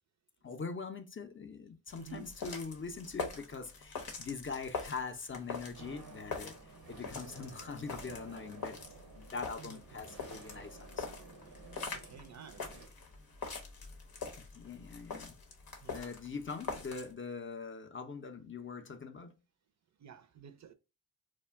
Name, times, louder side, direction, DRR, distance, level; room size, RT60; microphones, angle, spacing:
voice 1, 0.4-6.6 6.9-8.8 9.1-11.1 14.4-15.4 15.9-19.3, left 4 dB, 35° left, 0.4 m, -43 dB
sound 1, 1.9-17.1, left 4 dB, 85° left, 0.7 m, -44 dB
voice 2, 2.0-2.3 9.6-10.0 11.9-12.7 15.8-16.1 20.0-20.7, right 8 dB, 50° right, 0.4 m, -51 dB
sound 2, 5.7-12.9, right 4 dB, 90° right, 0.7 m, -53 dB
2.4 x 2.1 x 3.3 m
cardioid pair, 45°, 36 cm